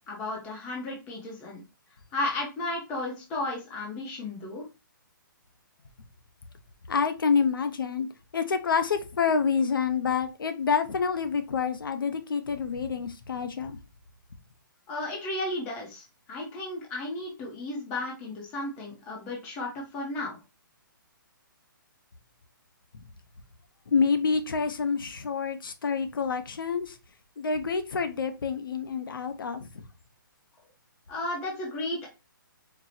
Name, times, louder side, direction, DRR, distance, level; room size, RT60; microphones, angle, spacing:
voice 1, 0.1-1.6 2.1-4.6 14.9-20.4 31.1-32.1, left 2 dB, 10° left, 0.6 m, -34 dB
voice 2, 6.9-8.1 8.3-13.8 23.9-27.0 27.4-29.7, left 5 dB, 75° left, 0.7 m, -27 dB
4.3 x 2.0 x 4.0 m
hypercardioid pair, 180°, 11 cm